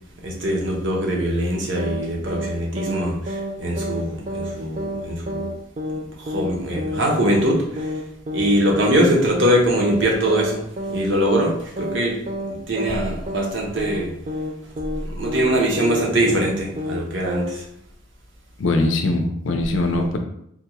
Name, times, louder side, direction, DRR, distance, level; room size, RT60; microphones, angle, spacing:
voice 1, 0.2-5.5 6.2-7.9 8.3-10.6 10.9-12.2 12.5-14.1 15.0-17.7, equal, 65° right, -1 dB, 0.8 m, -22 dB
sound 1, 1.8-2.0 2.3-2.5 2.8-3.0 3.3-3.5 3.8-4.0 4.3-4.5 4.8-5.0 5.3-5.5 5.8-6.0 6.3-6.5 6.8-7.0 7.3-7.5 7.8-8.0 8.3-8.5 8.8-9.0 9.3-9.5 9.8-10.0 10.3-10.5 10.8-11.0 11.3-11.5 11.8-12.0 12.3-12.5 12.8-13.0 13.3-13.5 13.8-14.0 14.3-14.5 14.8-15.0 15.3-15.5 15.8-16.0 16.3-16.5 16.8-17.0 17.3-17.5, equal, 35° right, 0.3 m, -28 dB
voice 2, 18.6-20.2, left 2 dB, 70° left, 4 dB, 0.5 m, -21 dB
3.6 x 2.3 x 2.9 m, 0.74 s
head